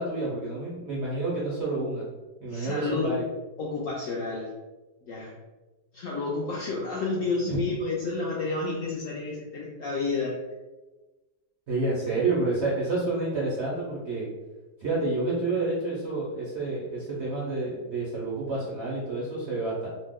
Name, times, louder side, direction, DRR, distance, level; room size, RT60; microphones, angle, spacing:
voice 1, 0.0-2.0 2.4-3.2 7.5-7.6 11.7-14.3 14.8-19.9, right 2 dB, 65° right, -6 dB, 0.7 m, -29 dB
voice 2, 2.5-3.2 3.6-4.5 5.1-5.3 5.9-10.4, left 3 dB, 70° left, -4 dB, 0.7 m, -30 dB
2.8 x 2.1 x 3.4 m, 1.2 s
omnidirectional pair, 1.8 m